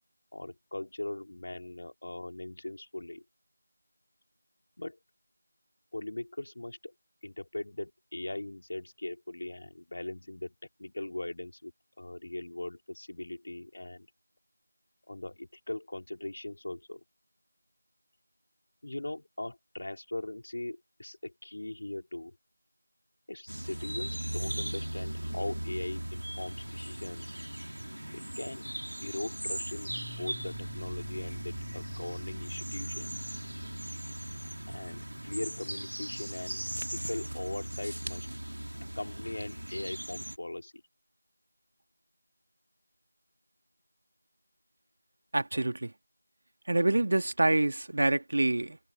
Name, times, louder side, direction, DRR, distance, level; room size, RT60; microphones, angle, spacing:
voice 1, 0.3-3.2 4.8-5.0 5.9-6.9 7.2-10.5 10.8-11.7 12.0-14.1 15.1-17.0 18.8-22.4 23.3-27.4 28.1-28.7 29.0-33.1 34.7-38.3 39.0-40.8, left 2 dB, 50° left, 4.1 m, -40 dB
sound 1, 23.5-40.4, right 1 dB, 90° right, 2.9 m, -38 dB
sound 2, 29.9-39.4, left 7 dB, ahead, 4.0 m, -57 dB
voice 2, 45.3-45.9 46.7-48.8, right 2 dB, 45° right, 2.2 m, -26 dB
figure-of-eight pair, 175°, 0 cm